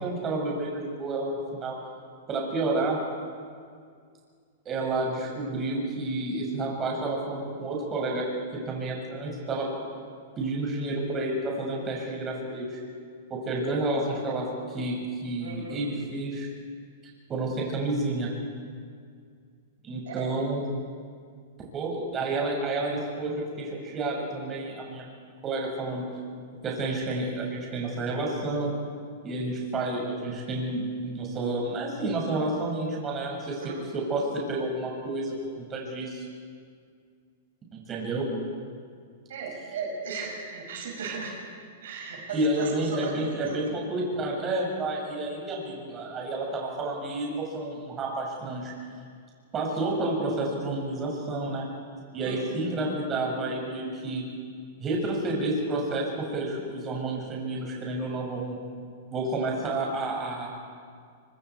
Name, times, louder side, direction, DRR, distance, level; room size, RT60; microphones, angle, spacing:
voice 1, 0.0-1.8 2.3-3.0 4.6-8.3 8.5-9.7 10.4-12.8 13.3-16.5 17.3-18.3 19.8-20.6 21.7-25.0 25.4-26.1 26.6-28.7 29.2-36.2 37.7-38.3 42.3-48.7 49.5-51.7 52.1-54.2 54.8-58.6 59.1-60.5, right 2 dB, 25° right, -2 dB, 6.1 m, -30 dB
voice 2, 15.4-15.9 20.0-20.3 33.6-33.9 39.3-41.4 41.8-43.6 52.2-52.4, right 4 dB, 80° right, -1 dB, 6.9 m, -36 dB
25.0 x 25.0 x 4.7 m, 2.1 s
hypercardioid pair, 130°, 0 cm